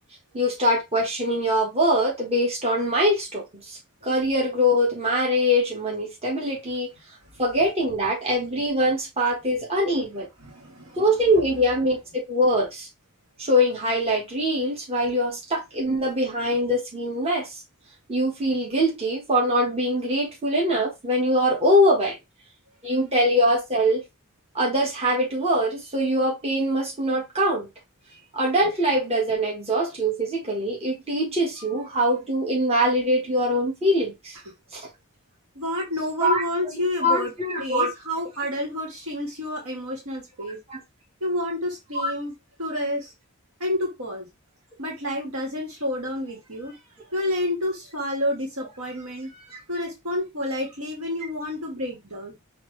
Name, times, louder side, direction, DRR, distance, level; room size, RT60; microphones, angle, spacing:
voice 1, 0.3-3.8 4.0-6.9 7.4-10.3 11.0-12.9 13.4-17.6 18.1-22.2 22.8-24.0 24.5-27.7 28.3-34.4 34.7-34.9 36.2-36.4 37.0-37.9 40.7-40.8 42.0-42.1, equal, 30° right, 1.5 m, -23 dB
voice 2, 10.4-11.1 35.6-37.3 37.6-40.6 41.2-42.3 42.6-43.1 43.6-44.3 44.8-46.8 47.1-52.3, left 1 dB, 85° right, 1.8 m, -29 dB
5.6 x 2.8 x 3.2 m
head